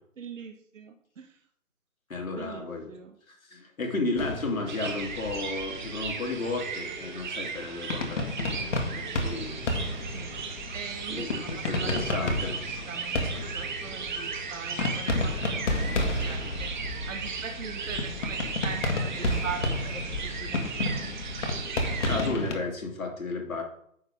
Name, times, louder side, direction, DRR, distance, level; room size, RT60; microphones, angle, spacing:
voice 1, 0.2-1.4 2.3-3.2 10.0-10.4 10.7-20.6, right 6 dB, 65° right, 6 dB, 1.2 m, -41 dB
voice 2, 2.1-2.9 3.3-9.7 10.1-10.3 11.1-12.5 12.9-13.0 22.0-23.6, left 3 dB, 80° left, 1 dB, 2.7 m, -33 dB
sound 1, 4.2-22.6, left 2 dB, 60° left, 1.9 m, -32 dB
Howler Monkeys and Birds in Costa Rica at Dawn, 4.7-22.3, right 5 dB, 35° right, 1.1 m, -37 dB
9.9 x 6.9 x 3.6 m, 0.68 s
figure-of-eight pair, 150°, 41 cm